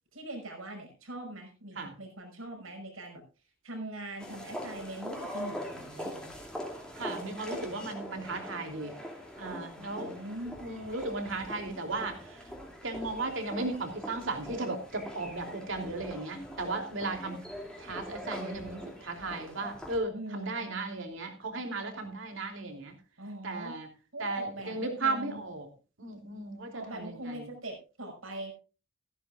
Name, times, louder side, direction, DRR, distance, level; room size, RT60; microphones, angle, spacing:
voice 1, 0.1-3.2 3.6-6.3 9.8-10.5 20.1-20.7 23.2-23.7 24.1-25.4 26.7-28.5, right 1 dB, 85° right, 2 dB, 5.9 m, -42 dB
sound 1, 4.2-20.0, equal, 5° left, 2.5 m, -43 dB
voice 2, 6.9-9.0 9.4-10.1 10.6-12.5 12.8-17.4 17.8-22.9 23.4-23.9 24.2-25.7 26.0-27.5, right 3 dB, 65° right, 4 dB, 3.1 m, -36 dB
15.0 x 15.0 x 2.4 m, 0.33 s
head